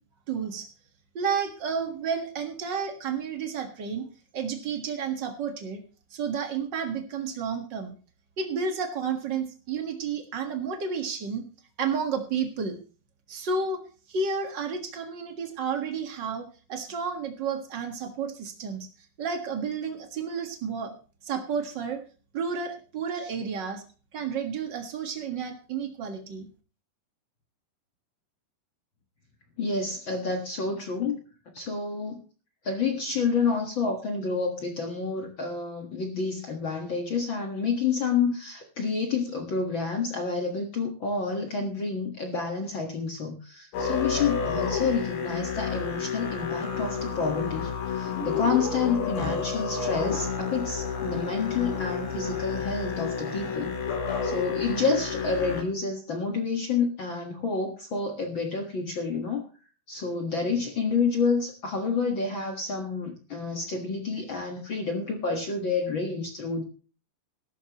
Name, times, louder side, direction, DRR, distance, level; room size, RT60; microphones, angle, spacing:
voice 1, 0.3-0.7 1.1-4.0 4.3-5.8 6.1-7.9 8.4-11.4 11.8-12.8 13.3-13.8 14.1-18.9 19.2-20.9 21.2-22.0 22.3-23.8 24.1-26.5, right 5 dB, 80° right, 5 dB, 1.0 m, -31 dB
voice 2, 29.6-31.2 31.5-32.2 32.6-53.7 54.2-59.4 59.9-66.6, left 4 dB, 70° left, 3 dB, 1.1 m, -29 dB
Musical instrument, 43.7-55.6, left 6 dB, 85° left, 5.4 m, -30 dB
15.5 x 13.0 x 3.0 m, 0.36 s
omnidirectional pair, 4.9 m